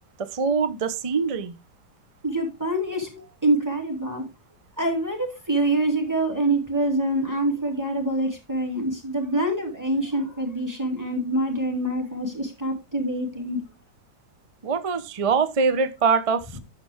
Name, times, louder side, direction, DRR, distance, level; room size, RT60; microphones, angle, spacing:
voice 1, 0.2-1.6 14.6-16.6, right 5 dB, 55° right, 12 dB, 0.3 m, -23 dB
voice 2, 2.2-4.2 4.8-13.6, right 1 dB, 10° right, 3 dB, 2.5 m, -25 dB
10.5 x 6.9 x 3.5 m, 0.27 s
omnidirectional pair, 1.9 m